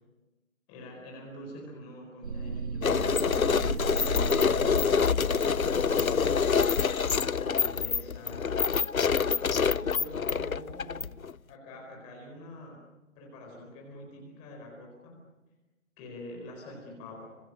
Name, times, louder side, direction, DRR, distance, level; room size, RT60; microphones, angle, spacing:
voice 1, 0.7-3.0 3.3-5.2 5.6-6.5 7.3-9.2 9.7-11.2 11.5-12.9 13.2-15.2 16.0-17.4, left 1 dB, 15° left, -1 dB, 4.6 m, -46 dB
sound 1, 2.2-8.2, right 4 dB, 40° right, 2.0 m, -37 dB
sound 2, 2.8-11.3, left 6 dB, 85° left, 0.7 m, -26 dB
27.0 x 26.5 x 6.5 m, 1.1 s
figure-of-eight pair, 150°, 41 cm